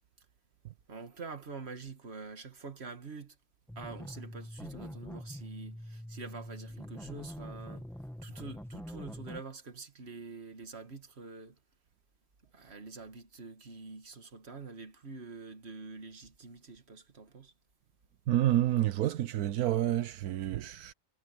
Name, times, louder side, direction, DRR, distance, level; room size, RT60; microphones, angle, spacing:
voice 1, 0.9-3.4 3.8-7.9 8.2-11.6 12.5-17.5, right 4 dB, 45° right, 2.1 m, -46 dB
sound 1, 3.7-9.4, equal, ahead, 1.4 m, -44 dB
voice 2, 18.3-20.9, right 13 dB, 85° right, 1.3 m, -29 dB
omnidirectional pair, 1.6 m